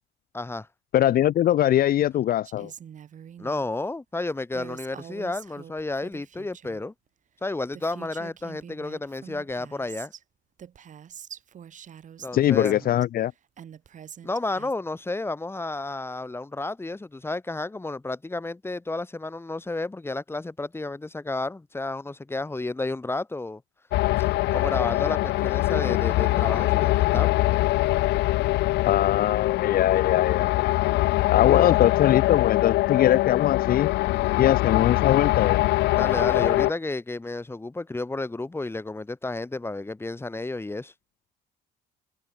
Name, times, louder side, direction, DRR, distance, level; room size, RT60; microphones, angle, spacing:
voice 1, 0.3-0.7 3.4-6.9 7.4-10.1 12.2-12.8 14.2-23.6 24.5-27.4 31.5-31.8 35.9-40.9, left 2 dB, 15° left, 7.7 m, -31 dB
voice 2, 0.9-2.7 12.3-13.3 28.9-30.7 31.3-33.9 34.4-35.6, left 12 dB, 60° left, 1.7 m, -22 dB
Female speech woman speaking, 2.4-3.7 4.5-6.8 7.4-7.5 7.7-10.2 10.6-13.0 13.6-14.7, right 9 dB, 50° right, 4.3 m, -45 dB
sound 1, 23.9-36.7, left 18 dB, 80° left, 1.5 m, -23 dB
cardioid pair, 110°, 17 cm